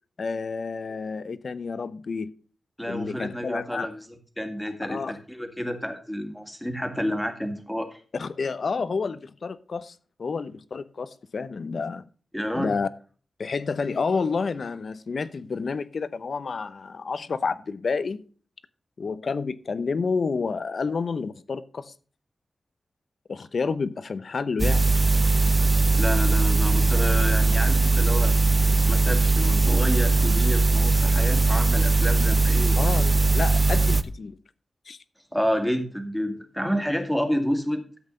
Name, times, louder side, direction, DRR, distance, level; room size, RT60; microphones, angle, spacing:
voice 1, 0.2-2.3 2.9-3.9 4.9-5.1 8.1-12.0 12.6-12.9 13.4-18.2 19.0-21.9 23.3-24.9 32.8-34.4 34.9-35.0, left 4 dB, 55° left, 0.8 m, -29 dB
voice 2, 2.8-4.0 4.4-8.0 12.3-12.7 26.0-28.3 28.9-32.8 35.3-37.8, equal, 5° left, 2.0 m, -29 dB
sound 1, 24.6-34.0, right 3 dB, 25° right, 0.8 m, -20 dB
13.0 x 8.0 x 3.8 m
wide cardioid pair, 125°, 0 cm